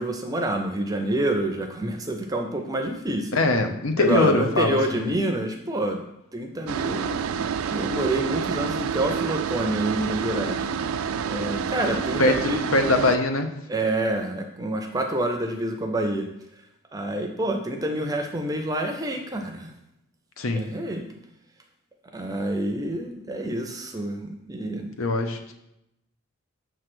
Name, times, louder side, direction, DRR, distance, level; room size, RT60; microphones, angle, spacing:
voice 1, 0.0-3.3 4.0-6.0 6.3-10.7 11.3-12.6 13.7-16.3 16.9-19.7 20.5-21.0 22.1-24.9, right 1 dB, 15° right, 4 dB, 0.5 m, -27 dB
voice 2, 3.3-5.0 12.2-13.5 20.4-20.6 25.0-25.5, left 2 dB, 75° left, 6 dB, 0.8 m, -22 dB
sound 1, 6.7-13.2, right 6 dB, 80° right, 0.4 m, -28 dB
6.7 x 3.2 x 6.0 m, 0.84 s
head